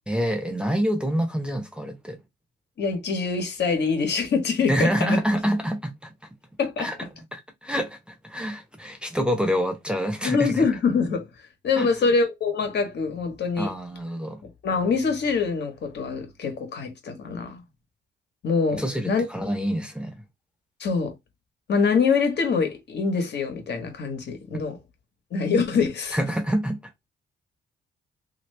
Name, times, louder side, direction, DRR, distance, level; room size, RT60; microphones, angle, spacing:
voice 1, 0.1-2.2 4.7-6.1 6.8-7.0 7.3-10.7 11.8-11.9 13.6-14.4 18.7-20.2 26.1-26.8, equal, 5° right, 0.8 m, -26 dB
voice 2, 2.8-5.2 6.6-6.9 10.2-11.3 11.6-13.7 14.6-17.6 18.4-19.3 20.8-21.1 21.7-24.8 25.3-26.2, left 5 dB, 60° left, 1.3 m, -24 dB
2.8 x 2.7 x 3.2 m
cardioid pair, 90°, 20 cm